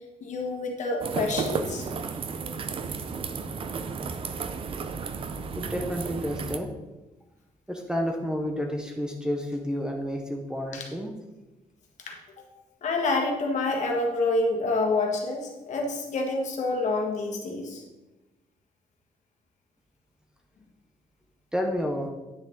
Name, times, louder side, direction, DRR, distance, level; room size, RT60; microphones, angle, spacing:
voice 1, 0.2-1.9 10.7-10.8 12.1-12.4 12.8-17.8, left 2 dB, 55° left, 1 dB, 1.6 m, -28 dB
sound 1, 1.0-6.6, right 5 dB, 40° right, 0.5 m, -33 dB
voice 2, 5.5-6.7 7.7-11.1 21.5-22.1, equal, 5° right, 2 dB, 0.7 m, -30 dB
9.6 x 6.6 x 3.7 m, 1.1 s
cardioid pair, 165°, 15 cm